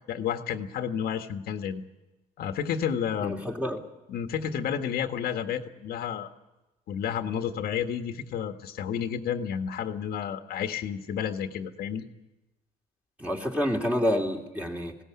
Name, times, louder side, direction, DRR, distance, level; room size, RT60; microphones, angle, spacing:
voice 1, 0.1-1.8 2.4-3.4 4.1-6.3 6.9-12.0, left 8 dB, 65° left, 6 dB, 1.6 m, -31 dB
voice 2, 3.2-3.8 13.2-15.0, equal, 10° right, 1 dB, 3.1 m, -28 dB
20.0 x 17.0 x 9.8 m, 1.0 s
cardioid pair, 110°, 17 cm